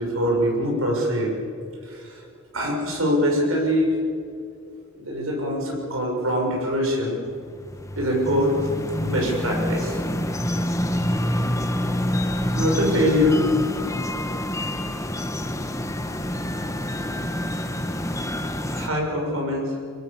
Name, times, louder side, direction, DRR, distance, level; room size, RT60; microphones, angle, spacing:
voice 1, 0.0-1.4 1.8-2.2 2.5-4.0 4.9-7.2 7.9-8.7 9.0-10.0 12.2-13.5 14.5-14.6 18.7-19.8, equal, 80° right, 0 dB, 6.6 m, -23 dB
sound 1, 7.2-18.9, left 1 dB, 15° left, 1.3 m, -27 dB
24.0 x 21.5 x 7.4 m, 2.4 s
head